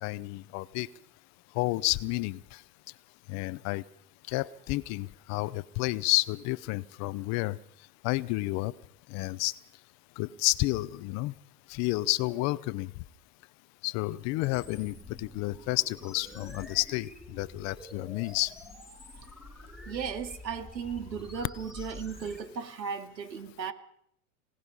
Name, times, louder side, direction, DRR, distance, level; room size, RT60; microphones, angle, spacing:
voice 1, 0.0-0.9 1.6-2.4 3.3-3.8 4.3-7.6 8.0-8.7 9.1-9.5 10.2-11.3 11.7-12.9 13.8-18.5, left 21 dB, 35° left, 18 dB, 0.8 m, -30 dB
sound 1, 14.4-22.4, left 1 dB, ahead, 4.9 m, -47 dB
voice 2, 19.9-23.7, right 6 dB, 85° right, 7 dB, 2.4 m, -36 dB
26.0 x 18.5 x 5.5 m, 0.68 s
hypercardioid pair, 115°, 49 cm